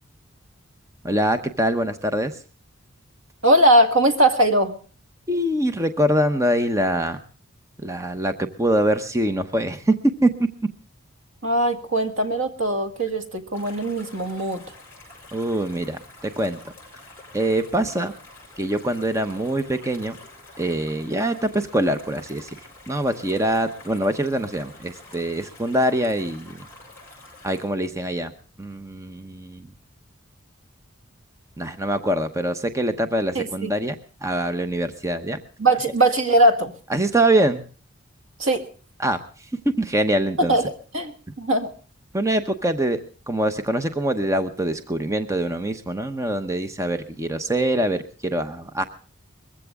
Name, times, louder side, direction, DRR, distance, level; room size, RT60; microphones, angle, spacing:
voice 1, 1.0-2.4 5.3-7.2 7.8-9.9 10.2-10.3 15.3-16.6 17.3-18.1 18.6-20.2 20.6-22.5 22.9-26.6 27.4-28.3 28.6-29.7 31.6-35.4 36.9-37.6 39.0-39.5 39.8-40.6 42.1-43.0 43.3-48.8, right 1 dB, 15° right, 9 dB, 0.8 m, -24 dB
voice 2, 3.4-4.8 11.4-14.6 33.4-33.7 35.6-36.7 38.4-38.6 40.4-40.6 40.9-41.1 41.4-41.7, right 1 dB, 70° right, 6 dB, 2.1 m, -20 dB
sound 1, 13.5-27.7, left 2 dB, 10° left, 7.6 m, -47 dB
21.5 x 15.0 x 3.6 m, 0.40 s
head